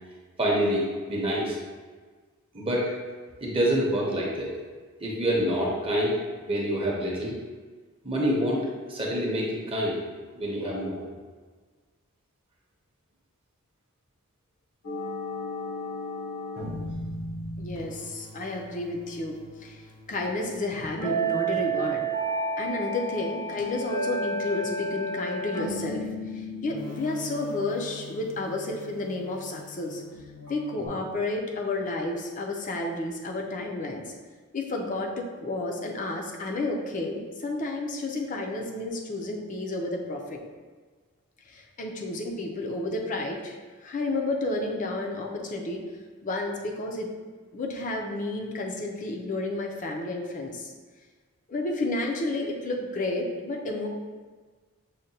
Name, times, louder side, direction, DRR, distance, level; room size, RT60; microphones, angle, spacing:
voice 1, 0.4-1.6 2.5-2.9 3.4-4.5 5.0-6.2 6.5-7.4 8.0-10.0 10.3-11.0, equal, 25° right, -3 dB, 0.7 m, -26 dB
sound 1, 14.8-30.9, right 2 dB, 80° left, 1.0 m, -34 dB
voice 2, 17.6-22.0 22.6-26.1 26.3-30.0 30.5-34.1 34.5-40.4 41.4-45.8 46.2-47.1 47.5-50.7 51.5-53.9, left 2 dB, 35° left, 1 dB, 0.5 m, -31 dB
6.3 x 2.2 x 2.7 m, 1.4 s
head